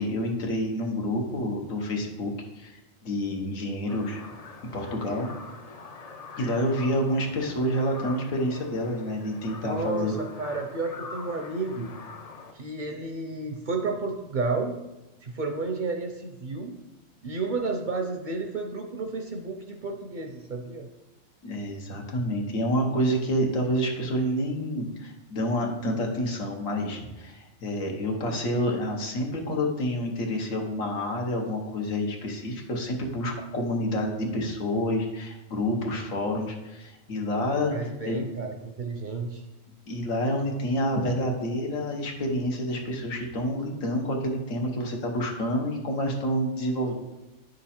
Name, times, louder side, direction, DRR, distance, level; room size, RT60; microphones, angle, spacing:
voice 1, 0.0-4.2 4.7-5.3 6.4-10.1 21.4-38.2 39.9-46.9, equal, 85° left, 1 dB, 1.6 m, -28 dB
sound 1, 3.9-12.5, left 4 dB, 50° left, 0.4 m, -44 dB
voice 2, 9.6-11.9 12.5-14.7 15.2-16.7 17.2-20.9 37.7-39.4, right 3 dB, 50° right, 3 dB, 0.6 m, -31 dB
10.0 x 3.9 x 4.2 m, 1.0 s
omnidirectional pair, 1.4 m